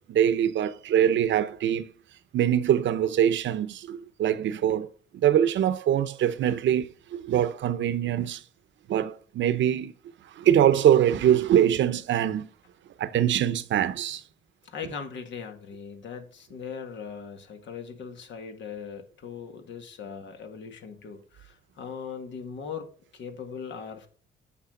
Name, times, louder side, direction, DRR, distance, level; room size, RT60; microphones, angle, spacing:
voice 1, 0.1-1.9 2.3-8.4 8.9-9.9 10.4-12.5 13.0-14.2, right 10 dB, 70° right, 0.8 m, -23 dB
voice 2, 14.6-24.1, left 6 dB, 70° left, 1.9 m, -39 dB
8.7 x 6.2 x 3.8 m
cardioid pair, 90°, 20 cm